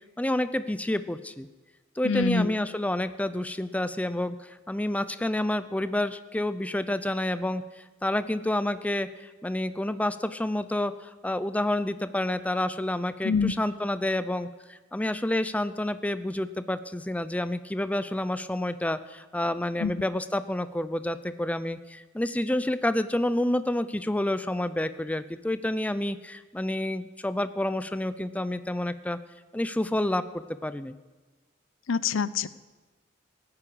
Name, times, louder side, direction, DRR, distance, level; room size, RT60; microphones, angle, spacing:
voice 1, 0.2-1.5 2.0-29.2 29.5-31.0, left 1 dB, 5° left, 13 dB, 0.5 m, -29 dB
voice 2, 2.0-2.5 13.2-13.5 19.8-19.9 31.9-32.5, left 5 dB, 80° left, 17 dB, 0.6 m, -25 dB
17.0 x 9.7 x 8.6 m, 1.2 s
head